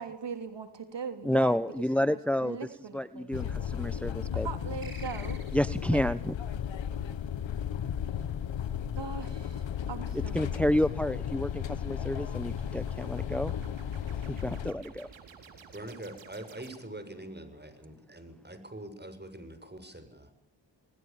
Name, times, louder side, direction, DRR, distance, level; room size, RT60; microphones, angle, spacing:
voice 1, 0.0-1.6 2.0-2.1 2.4-3.6 4.4-5.4 5.9-6.0 9.0-10.6, right 6 dB, 70° right, 8 dB, 3.2 m, -40 dB
voice 2, 1.2-2.7 2.9-4.5 5.5-6.3 10.1-13.5 14.2-15.1 18.1-18.2, left 1 dB, 5° left, 15 dB, 1.2 m, -30 dB
sound 1, 3.3-14.7, left 9 dB, 80° left, 1.4 m, -34 dB
sound 2, 4.8-6.0, right 3 dB, 50° right, 7.0 m, -49 dB
sound 3, 12.0-17.2, right 6 dB, 90° right, 4.0 m, -52 dB
voice 3, 15.7-20.3, right 1 dB, 20° right, 10 dB, 7.3 m, -44 dB
29.5 x 20.5 x 7.3 m, 0.75 s
supercardioid pair, 40°, 45 cm